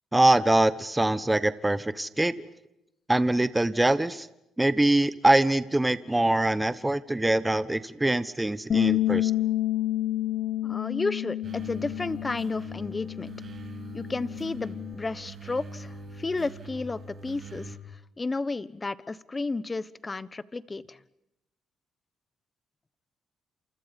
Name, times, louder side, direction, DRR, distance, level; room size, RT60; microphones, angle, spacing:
voice 1, 0.1-2.4 3.1-4.3 4.6-9.3, right 1 dB, 10° right, 15 dB, 1.2 m, -23 dB
Bass guitar, 8.7-15.0, left 13 dB, 55° left, 1.0 m, -29 dB
voice 2, 10.6-13.3 13.9-17.8 18.2-21.0, left 3 dB, 25° left, 17 dB, 1.2 m, -32 dB
sound 1, 11.4-17.8, right 2 dB, 45° right, 5.9 m, -42 dB
29.5 x 28.0 x 5.4 m, 0.86 s
cardioid pair, 90°, 0 cm